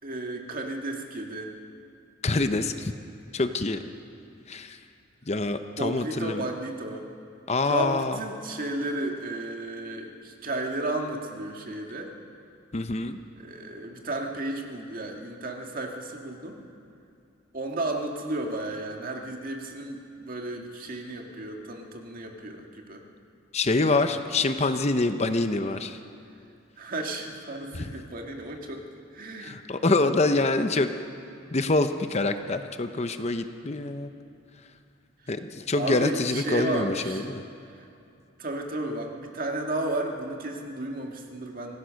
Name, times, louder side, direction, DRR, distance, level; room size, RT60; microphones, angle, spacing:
voice 1, 0.0-1.5 5.8-7.0 7.7-12.1 13.4-16.6 17.5-23.0 26.8-28.8 29.1-29.6 35.7-37.3 38.4-41.8, right 2 dB, 45° right, 2 dB, 2.0 m, -33 dB
voice 2, 2.2-2.9 3.3-3.8 4.5-4.8 5.3-6.5 7.5-8.2 12.7-13.2 23.5-26.0 27.7-27.9 29.4-30.9 31.5-34.1 35.3-37.4, left 2 dB, 35° left, 8 dB, 0.7 m, -26 dB
26.0 x 16.0 x 6.4 m, 2.5 s
head